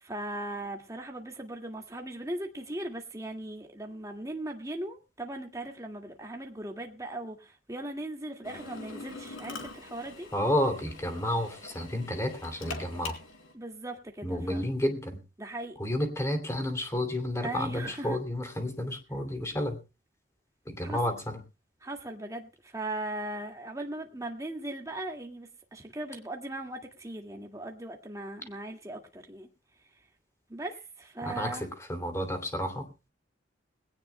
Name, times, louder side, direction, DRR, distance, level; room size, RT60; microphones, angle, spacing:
voice 1, 0.0-10.3 13.5-14.7 15.4-15.7 17.4-18.2 20.8-21.0 21.8-29.5 30.5-30.7 31.0-31.7, right 1 dB, 15° right, 1.9 m, -38 dB
Drill, 8.4-13.5, left 3 dB, 80° left, 3.4 m, -44 dB
voice 2, 10.3-13.2 14.2-15.2 15.8-19.8 20.7-21.4 31.2-33.1, left 1 dB, 15° left, 2.7 m, -31 dB
21.0 x 17.0 x 2.2 m
head